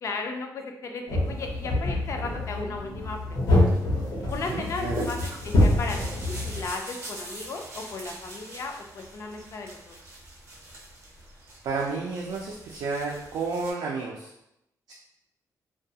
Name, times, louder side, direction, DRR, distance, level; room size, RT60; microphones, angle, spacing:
voice 1, 0.0-3.6 4.3-10.0, left 3 dB, 50° left, 3 dB, 0.3 m, -35 dB
sound 1, 1.1-6.7, left 1 dB, 80° left, 0.8 m, -25 dB
sound 2, 4.3-13.7, right 1 dB, 40° right, 0.6 m, -44 dB
voice 2, 4.5-5.1 11.6-14.3 14.9-15.0, right 4 dB, 90° right, -2 dB, 0.4 m, -31 dB
2.3 x 2.2 x 2.7 m, 0.83 s
wide cardioid pair, 165°, 7 cm